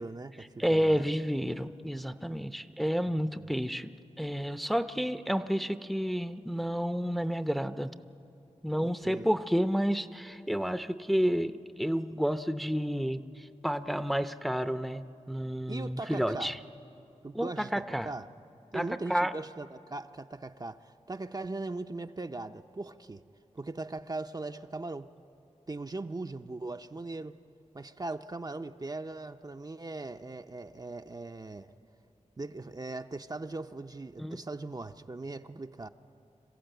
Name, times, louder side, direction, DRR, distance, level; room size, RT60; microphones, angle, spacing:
voice 1, 0.0-1.1 2.7-2.8 3.4-3.5 8.8-9.3 15.7-16.5 17.2-18.3 18.7-23.2 23.5-25.1 25.7-27.4 27.7-31.7 32.4-35.9, right 2 dB, 35° right, 6 dB, 0.6 m, -39 dB
voice 2, 0.6-3.9 4.2-7.9 8.6-16.6 17.3-18.1 18.7-19.3 34.2-34.4, equal, ahead, 10 dB, 0.7 m, -30 dB
26.0 x 14.5 x 9.1 m, 2.7 s
cardioid pair, 55°, 12 cm